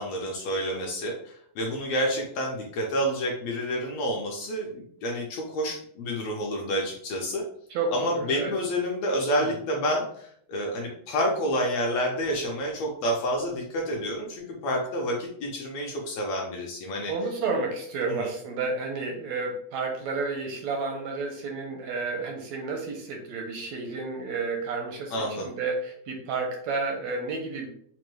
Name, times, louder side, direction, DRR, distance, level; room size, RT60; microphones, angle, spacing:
voice 1, 0.0-7.4 7.9-17.1 18.1-18.3 25.1-25.5, equal, 75° left, -1 dB, 1.6 m, -29 dB
voice 2, 7.7-8.5 9.4-9.5 17.1-27.7, right 4 dB, 80° right, 2 dB, 1.6 m, -31 dB
5.1 x 2.1 x 3.0 m, 0.65 s
omnidirectional pair, 3.4 m